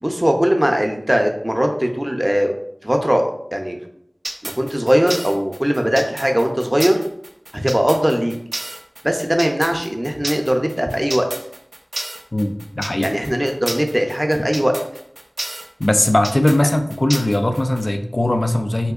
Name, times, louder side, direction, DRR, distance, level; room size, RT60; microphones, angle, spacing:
voice 1, 0.0-2.5 2.8-3.2 3.5-3.8 4.4-7.0 7.5-8.3 9.0-11.3 13.0-14.7, equal, 20° right, 3 dB, 0.4 m, -19 dB
sound 1, 4.2-17.8, right 1 dB, 85° right, 0.3 m, -30 dB
voice 2, 12.3-13.1 15.8-18.9, left 1 dB, 55° left, 6 dB, 0.3 m, -19 dB
3.3 x 2.8 x 2.4 m, 0.71 s
wide cardioid pair, 45°, 0 cm